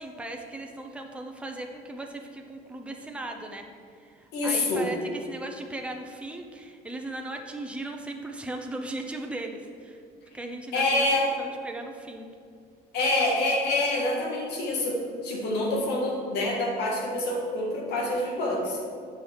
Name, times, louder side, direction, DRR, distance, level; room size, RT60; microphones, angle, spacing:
voice 1, 0.0-3.7 3.9-10.0 10.3-11.1 11.4-12.3, right 2 dB, 5° right, 2 dB, 0.7 m, -37 dB
voice 2, 4.3-4.9 10.7-11.3 12.9-15.0 15.2-18.8, left 2 dB, 80° left, -2 dB, 1.9 m, -26 dB
8.1 x 5.7 x 4.7 m, 2.3 s
cardioid pair, 110°, 17 cm